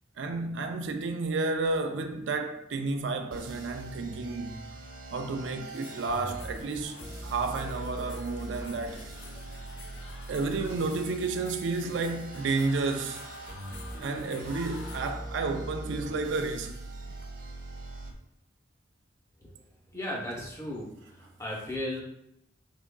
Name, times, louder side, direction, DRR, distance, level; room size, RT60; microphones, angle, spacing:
voice 1, 0.2-4.6 5.1-7.0 7.2-9.0 10.3-13.2 14.0-16.8, right 3 dB, 85° right, 0.4 m, -31 dB
sound 1, 3.3-18.1, right 1 dB, 50° right, 0.8 m, -42 dB
sound 2, 5.7-15.1, left 3 dB, 80° left, 0.5 m, -49 dB
voice 2, 19.9-22.0, left 1 dB, 15° left, 0.7 m, -35 dB
3.6 x 3.5 x 2.2 m
head